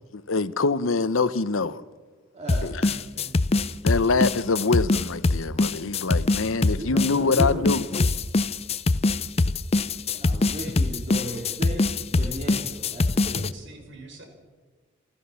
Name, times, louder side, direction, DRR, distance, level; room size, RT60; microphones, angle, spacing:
voice 1, 0.1-1.8 2.6-2.8 3.8-7.8, left 4 dB, 80° left, 0.8 m, -24 dB
voice 2, 2.3-2.8 6.8-7.8 10.1-13.5, equal, 30° right, 2.9 m, -35 dB
sound 1, 2.5-13.5, left 3 dB, 30° left, 0.6 m, -23 dB
voice 3, 2.8-3.3 13.5-14.3, right 3 dB, 60° right, 4.5 m, -45 dB
28.0 x 13.5 x 7.0 m
head